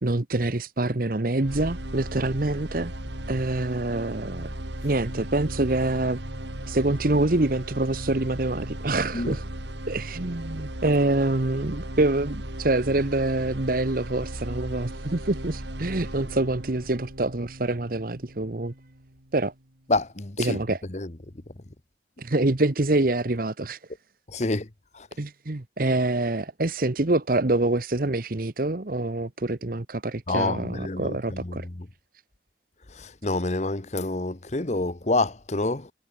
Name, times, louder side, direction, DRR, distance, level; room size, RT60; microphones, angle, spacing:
voice 1, 0.0-2.9 3.3-4.5 4.8-6.2 6.7-9.4 9.9-18.7 19.3-19.5 20.4-20.8 22.2-23.8 25.2-31.7, right 2 dB, 50° right, 1.1 m, -26 dB
sound 1, 1.4-19.4, right 1 dB, 80° right, 3.9 m, -36 dB
voice 2, 19.9-20.6 20.9-21.1 24.3-24.7 24.9-25.1 30.3-31.9 32.9-35.9, left 2 dB, 40° left, 1.1 m, -28 dB
head